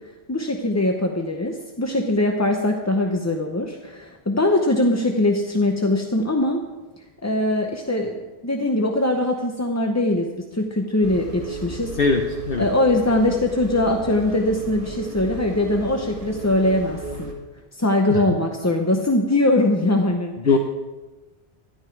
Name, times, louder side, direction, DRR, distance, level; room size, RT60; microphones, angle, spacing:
voice 1, 0.3-6.7 7.2-12.0 12.6-17.3 17.7-20.6, left 1 dB, 20° left, 2 dB, 0.6 m, -22 dB
sound 1, 11.0-17.3, right 2 dB, 55° right, 2.2 m, -34 dB
voice 2, 12.0-12.2 12.5-12.6 18.1-18.2 20.4-20.6, left 4 dB, 60° left, 4 dB, 1.0 m, -19 dB
12.5 x 11.5 x 4.6 m, 1.2 s
omnidirectional pair, 1.1 m